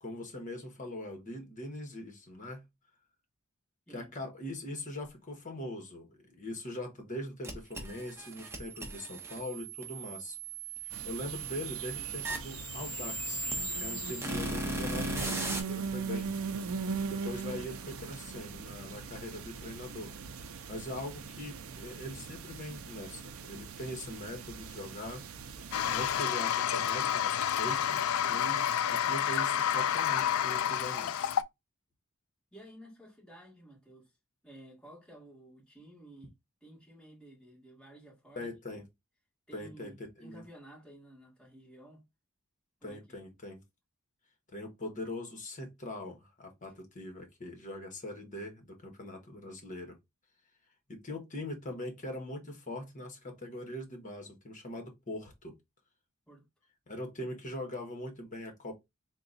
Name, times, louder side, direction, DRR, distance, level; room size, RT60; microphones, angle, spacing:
voice 1, 0.0-2.6 3.9-10.4 10.8-13.5 13.8-16.3 17.1-20.1 20.7-25.2 25.9-31.4 38.3-38.8 39.5-40.4 42.8-43.6 44.5-50.0 50.9-55.6 56.9-58.7, left 1 dB, 40° left, 1.1 m, -42 dB
sound 1, 7.4-15.6, right 2 dB, 10° right, 0.8 m, -38 dB
sound 2, 10.9-26.2, right 5 dB, 80° right, 0.5 m, -40 dB
Toilet flush, 25.7-31.4, left 9 dB, 80° left, 0.3 m, -29 dB
voice 2, 32.5-34.1 34.4-36.3 36.6-38.8 39.5-42.0 42.8-43.0 56.3-56.5, right 1 dB, 5° left, 2.0 m, -53 dB
3.7 x 2.3 x 3.9 m
head